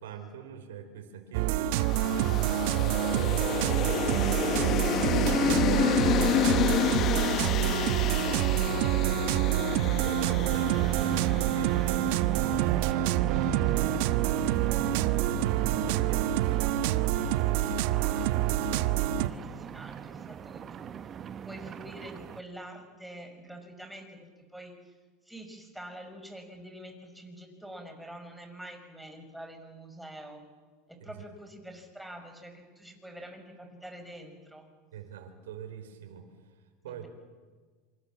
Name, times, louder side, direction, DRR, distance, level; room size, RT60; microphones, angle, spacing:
voice 1, 0.0-4.2 4.8-6.9 7.5-12.3 12.6-15.5 16.0-16.7 31.0-31.2 34.9-36.6 36.8-37.1, right 8 dB, 90° right, 5 dB, 4.6 m, -44 dB
sound 1, 1.3-19.3, right 12 dB, 65° right, 1.2 m, -27 dB
sound 2, 1.8-12.1, left 11 dB, 40° left, 1.3 m, -30 dB
sound 3, 8.1-22.4, right 8 dB, 30° right, 1.0 m, -38 dB
voice 2, 19.1-20.9 21.4-24.9 25.2-30.4 30.9-34.7 36.9-37.1, right 1 dB, 5° right, 5 dB, 5.8 m, -46 dB
27.0 x 26.5 x 7.5 m, 1.5 s
supercardioid pair, 120°, 0 cm